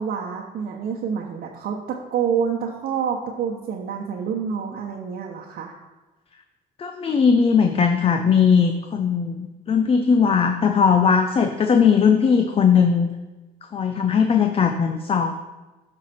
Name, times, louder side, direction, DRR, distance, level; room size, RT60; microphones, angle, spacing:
voice 1, 0.0-5.7, right 7 dB, 65° right, -1 dB, 1.0 m, -27 dB
voice 2, 6.8-13.1 13.7-15.3, left 6 dB, 35° left, 6 dB, 0.6 m, -19 dB
11.0 x 5.9 x 4.3 m, 1.1 s
cardioid pair, 110°, 17 cm